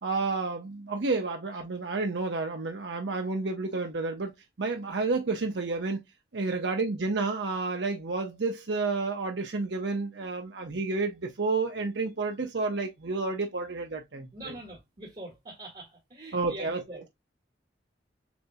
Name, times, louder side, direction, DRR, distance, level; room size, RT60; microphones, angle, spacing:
voice 1, 0.0-4.3 4.6-6.0 6.3-14.6 16.3-16.8, right 3 dB, 80° right, 0.7 m, -30 dB
voice 2, 14.3-17.0, right 1 dB, 40° right, 1.8 m, -44 dB
7.0 x 2.8 x 2.2 m
head